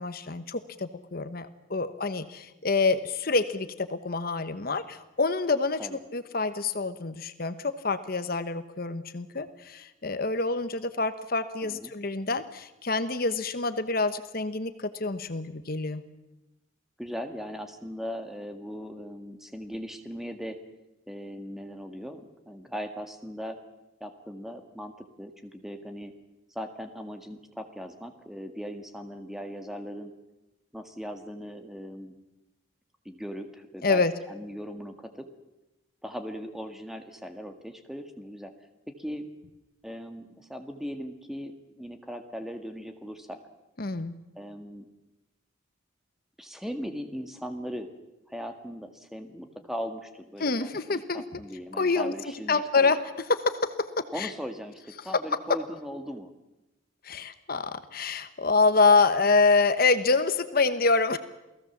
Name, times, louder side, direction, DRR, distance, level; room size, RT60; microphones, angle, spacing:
voice 1, 0.0-5.8 6.1-16.0 33.8-34.1 43.8-44.1 50.4-51.2 51.8-52.1 52.5-53.0 53.3-53.6 54.2-54.3 57.0-61.2, left 3 dB, 50° left, 11 dB, 1.1 m, -26 dB
voice 2, 11.6-11.9 17.0-20.6 21.1-23.6 24.0-26.1 26.5-30.1 30.7-32.1 33.0-34.0 34.3-35.3 36.0-38.5 39.0-39.3 39.8-43.4 44.3-44.9 46.4-47.9 48.3-52.9 54.1-56.3, equal, ahead, 6 dB, 1.8 m, -39 dB
28.5 x 17.5 x 7.3 m, 0.99 s
head